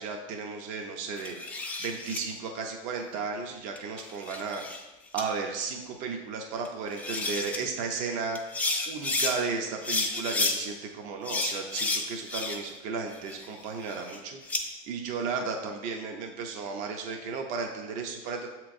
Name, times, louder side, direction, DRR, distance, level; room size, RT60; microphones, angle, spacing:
voice 1, 0.0-1.4 1.8-4.6 5.1-8.4 8.9-18.5, right 5 dB, 50° right, 3 dB, 0.6 m, -34 dB
sound 1, 1.2-2.2 3.8-4.8 5.2-5.3 6.6-6.7 7.0-7.6 8.3-9.3 9.8-10.6 11.2-12.8 13.1-14.6, left 3 dB, 10° left, 0.4 m, -31 dB
7.1 x 3.0 x 2.5 m, 1.1 s
supercardioid pair, 140°, 16 cm